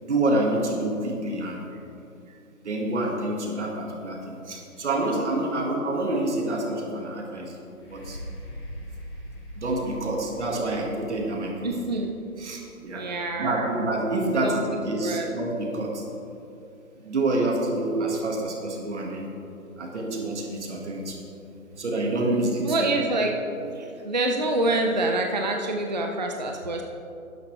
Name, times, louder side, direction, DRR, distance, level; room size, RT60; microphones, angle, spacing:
voice 1, 0.0-1.6 2.6-8.2 9.6-11.7 12.4-13.1 13.4-16.0 17.0-19.3 19.8-21.2 21.8-22.9 23.6-23.7, right 2 dB, 50° right, 1 dB, 1.9 m, -27 dB
sound 1, 7.7-15.5 16.1-16.2, equal, 20° left, 2.3 m, -43 dB
voice 2, 11.6-12.1 12.9-13.7 14.3-14.7 15.0-15.3 22.6-23.3 23.7-26.8, right 2 dB, 30° right, 3 dB, 0.5 m, -26 dB
12.0 x 10.0 x 3.3 m, 2.7 s
figure-of-eight pair, 150°, 44 cm